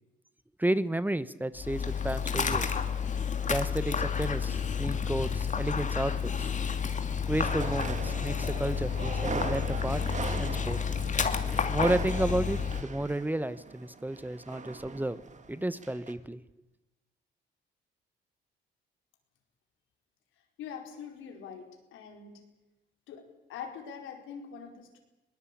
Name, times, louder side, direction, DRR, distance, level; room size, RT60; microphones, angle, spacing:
voice 1, 0.6-2.8 3.5-6.5 7.3-10.0 10.4-10.8 11.7-15.2 15.5-16.4, right 1 dB, 10° right, 15 dB, 1.1 m, -32 dB
Dog, 1.6-12.8, left 6 dB, 40° left, 2.7 m, -30 dB
sound 1, 7.4-15.6 15.8-16.1, right 4 dB, 35° right, 2.5 m, -40 dB
voice 2, 20.6-22.4 23.1-25.0, left 7 dB, 90° left, 4 dB, 4.8 m, -44 dB
21.5 x 20.0 x 8.6 m, 0.99 s
cardioid pair, 90°, 20 cm